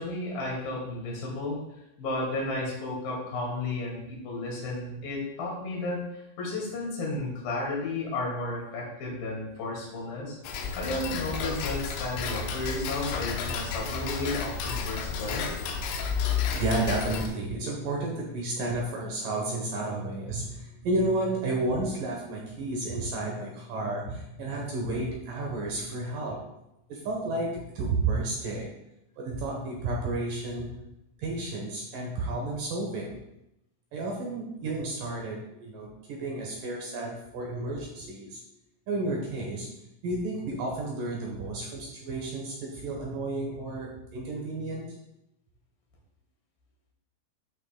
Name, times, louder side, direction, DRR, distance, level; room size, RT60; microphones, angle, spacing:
voice 1, 0.0-1.6 2.0-10.4 10.8-15.6, left 2 dB, 60° left, -2 dB, 3.5 m, -33 dB
Tick-tock, 10.4-17.3, left 5 dB, 85° left, 3.0 m, -31 dB
voice 2, 16.4-26.4 26.9-28.7 29.2-30.7 31.2-33.2 33.9-38.4 38.9-39.7 40.0-44.8, right 2 dB, 70° right, -1 dB, 2.1 m, -32 dB
12.0 x 6.2 x 2.2 m, 0.86 s
omnidirectional pair, 5.2 m